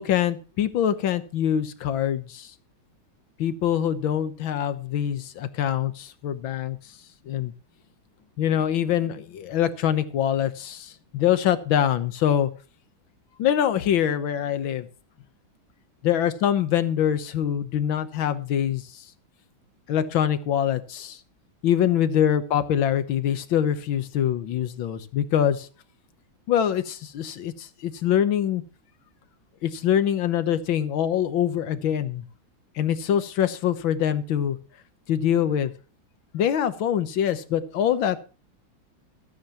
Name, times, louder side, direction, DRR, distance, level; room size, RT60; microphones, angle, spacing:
voice 1, 0.0-2.5 3.4-6.8 7.3-7.5 8.4-12.5 13.4-14.9 16.0-18.8 19.9-21.2 21.6-25.7 26.5-28.6 29.6-32.2 32.8-34.6 35.1-35.7 36.3-38.2, left 10 dB, 75° left, 11 dB, 1.8 m, -24 dB
25.5 x 9.5 x 3.0 m, 0.36 s
omnidirectional pair, 2.2 m